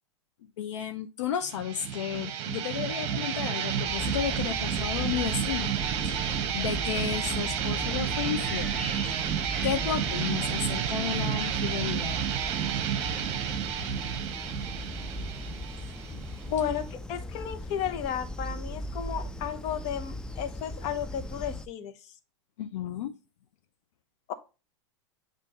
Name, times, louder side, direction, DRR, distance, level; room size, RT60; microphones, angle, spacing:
voice 1, 0.6-5.7 6.0-8.7 9.6-12.2 22.6-23.1, left 9 dB, 75° left, 0.6 m, -33 dB
sound 1, 1.5-16.9, right 9 dB, 45° right, 0.9 m, -31 dB
sound 2, 3.9-21.7, left 1 dB, 5° left, 0.4 m, -38 dB
voice 2, 16.5-21.9 24.3-24.4, left 9 dB, 45° left, 1.0 m, -33 dB
7.5 x 2.6 x 5.0 m
hypercardioid pair, 110°, 15 cm